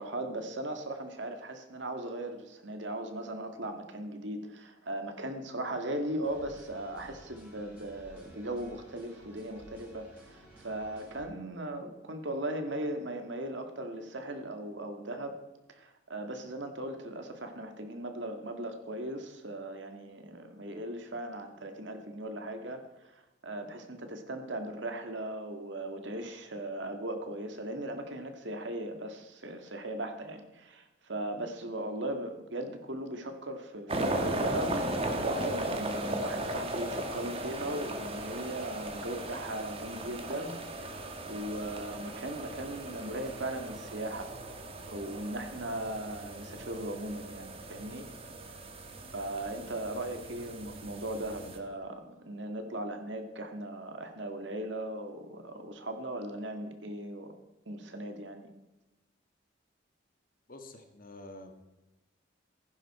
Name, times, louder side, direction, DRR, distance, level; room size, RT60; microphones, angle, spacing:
voice 1, 0.0-15.4 15.7-22.8 23.1-44.3 44.9-48.1 49.1-57.3 57.7-58.5, right 1 dB, 65° right, 6 dB, 1.9 m, -38 dB
sound 1, 6.2-11.2, equal, 5° right, 5.8 m, -55 dB
sound 2, 33.9-51.6, right 1 dB, 30° right, 1.5 m, -37 dB
voice 2, 60.5-61.5, left 2 dB, 45° left, 6 dB, 1.7 m, -48 dB
15.5 x 11.0 x 4.3 m, 1.0 s
head